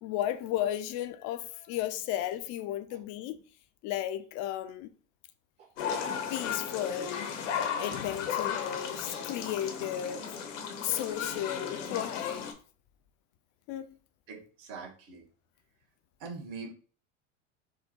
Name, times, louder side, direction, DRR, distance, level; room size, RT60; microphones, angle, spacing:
voice 1, 0.0-3.4 3.8-4.9 6.3-10.3 10.8-12.5 13.7-13.9, left 12 dB, 50° left, 0.6 m, -34 dB
sound 1, 5.8-12.5, left 7 dB, 70° left, 1.1 m, -35 dB
voice 2, 14.3-15.3 16.2-16.7, right 4 dB, 60° right, 1.6 m, -43 dB
4.6 x 2.2 x 4.2 m
hypercardioid pair, 85°, 37 cm